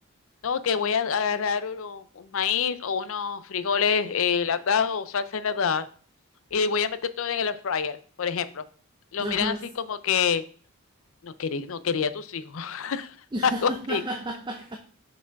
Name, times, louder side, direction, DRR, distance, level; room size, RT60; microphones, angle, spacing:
voice 1, 0.4-5.9 6.5-8.6 9.1-9.5 9.9-10.4 11.2-13.1 13.4-14.0, left 6 dB, 65° left, 0.5 m, -26 dB
voice 2, 9.2-9.6 13.3-14.8, right 1 dB, 20° right, 0.6 m, -32 dB
6.1 x 4.8 x 4.5 m
head